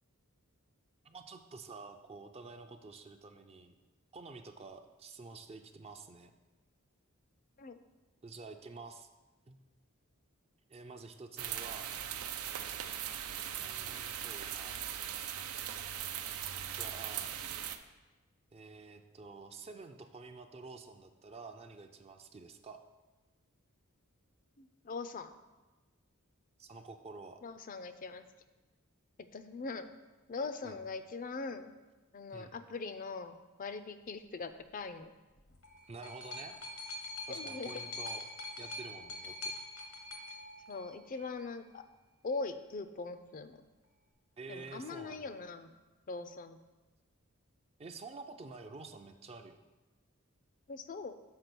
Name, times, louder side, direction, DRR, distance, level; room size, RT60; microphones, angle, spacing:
voice 1, 1.0-3.8 4.1-6.3 8.2-9.1 9.5-9.6 10.7-11.9 13.6-14.8 16.7-17.3 18.5-22.8 26.6-27.4 30.6-30.8 32.3-32.6 35.9-36.6 37.3-38.2 38.6-39.5 44.4-45.4 47.8-49.6, right 3 dB, 30° right, 6 dB, 0.4 m, -49 dB
sound 1, 11.4-17.8, right 10 dB, 80° right, 0.5 m, -39 dB
voice 2, 24.6-25.3 27.4-28.2 29.3-29.9 30.3-31.7 32.1-35.1 37.3-37.7 40.7-41.8 42.2-43.6 44.5-45.8 46.1-46.6 50.7-51.1, left 4 dB, 40° left, 11 dB, 0.4 m, -41 dB
sound 2, 35.4-41.4 42.3-42.4, left 2 dB, 75° left, 1.0 m, -44 dB
6.6 x 5.2 x 6.0 m, 1.2 s
head